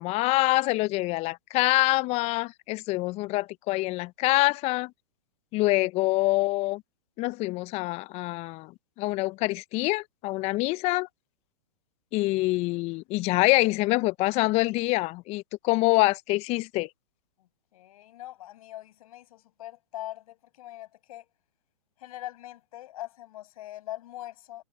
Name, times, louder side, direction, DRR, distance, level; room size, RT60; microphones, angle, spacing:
voice 1, 0.0-4.9 5.5-6.8 7.2-8.7 9.0-11.1 12.1-16.9, left 21 dB, 30° left, 0.6 m, -25 dB
voice 2, 17.4-21.3 22.0-24.6, left 14 dB, 60° left, 6.6 m, -42 dB
hypercardioid pair, 120°, 21 cm